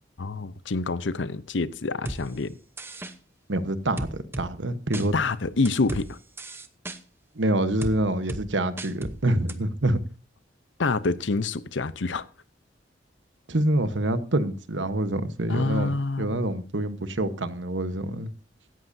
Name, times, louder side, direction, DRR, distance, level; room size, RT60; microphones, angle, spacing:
voice 1, 0.2-2.6 5.1-6.2 10.8-12.3 15.5-16.4, left 3 dB, 80° left, 0.8 m, -27 dB
sound 1, 2.1-2.2 2.8-3.1 4.0-4.5 4.9-5.1 5.7-6.0 6.4-7.0 7.8-8.0 8.3-8.4 8.8-9.2 9.5-9.6, right 1 dB, 15° right, 0.9 m, -34 dB
voice 2, 3.5-5.1 7.3-10.0 13.5-18.3, right 1 dB, 90° right, 1.2 m, -26 dB
17.0 x 13.5 x 2.7 m
head